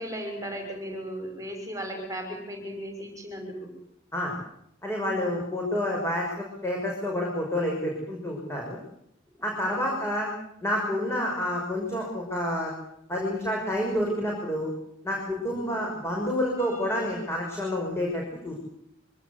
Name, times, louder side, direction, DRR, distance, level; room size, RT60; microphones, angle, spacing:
voice 1, 0.0-3.7 5.1-5.3 9.4-9.9 15.3-15.8 16.6-17.2 17.6-17.7, equal, 15° right, 3 dB, 6.0 m, -37 dB
voice 2, 4.8-8.8 9.4-10.3 10.6-12.7 13.1-14.7 15.0-18.5, left 1 dB, 15° left, -1 dB, 6.1 m, -29 dB
25.0 x 18.5 x 8.3 m, 0.75 s
head